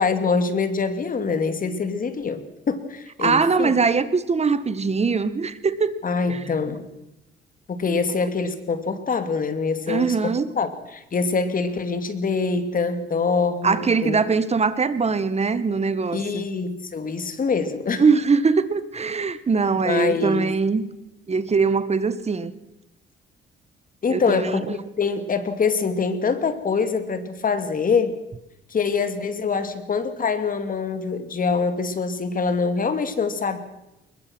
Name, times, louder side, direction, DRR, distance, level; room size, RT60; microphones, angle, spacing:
voice 1, 0.0-3.8 6.0-6.9 7.7-14.2 16.1-18.0 19.8-20.5 24.0-28.2 28.7-33.6, left 5 dB, 45° left, 10 dB, 2.6 m, -24 dB
voice 2, 3.2-5.9 6.3-6.4 9.9-10.5 13.6-16.4 18.0-20.8 21.3-22.5 24.1-24.8, right 5 dB, 35° right, 14 dB, 1.5 m, -22 dB
22.0 x 21.0 x 6.2 m, 0.93 s
cardioid pair, 90°, 20 cm